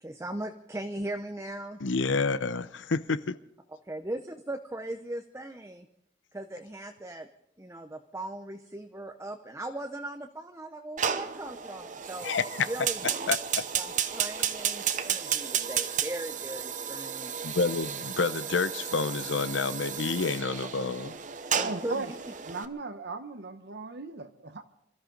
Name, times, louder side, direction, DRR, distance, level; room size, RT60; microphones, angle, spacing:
voice 1, 0.0-1.8 3.8-5.9 6.3-7.3 7.6-12.4 12.7-13.2 13.8-17.3 21.6-22.1, right 1 dB, 15° right, 5 dB, 0.7 m, -38 dB
voice 2, 1.8-3.4 12.2-12.7 13.3-13.6 17.4-21.2, left 4 dB, 90° left, 14 dB, 0.7 m, -29 dB
Fire, 11.0-22.7, right 8 dB, 45° right, 0.9 m, -33 dB
voice 3, 21.6-22.1 22.5-24.6, right 3 dB, 65° right, 8 dB, 1.0 m, -37 dB
26.5 x 13.5 x 3.9 m, 0.75 s
head